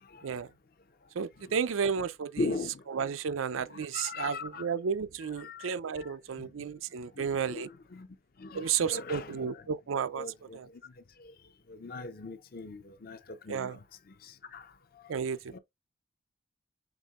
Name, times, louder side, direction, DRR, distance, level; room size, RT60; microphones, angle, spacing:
voice 1, 1.2-2.3 2.9-7.7 8.5-10.3 10.5-10.7 13.5-13.8 15.1-15.6, right 6 dB, 85° right, 0.5 m, -32 dB
voice 2, 2.4-2.7 3.7-4.7 5.4-5.7 6.0-6.1 7.2-7.6 7.9-8.1 8.4-9.6 10.2-10.6 11.7-13.2 13.5-13.8 14.5-14.6 15.5-15.6, left 3 dB, 45° left, 0.6 m, -39 dB
6.0 x 3.6 x 2.4 m
head